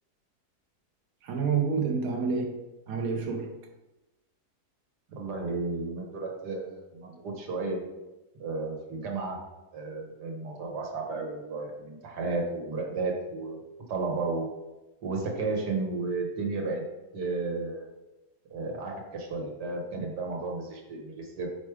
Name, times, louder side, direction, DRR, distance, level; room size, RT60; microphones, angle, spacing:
voice 1, 1.2-2.6 2.9-3.5, right 5 dB, 65° right, 2 dB, 1.1 m, -28 dB
voice 2, 5.1-7.8 8.4-9.4 9.7-13.6 13.9-14.5 15.0-16.8 17.1-17.9 18.5-21.5, right 3 dB, 85° right, 1 dB, 1.8 m, -33 dB
5.2 x 4.7 x 4.8 m, 1.0 s
omnidirectional pair, 1.7 m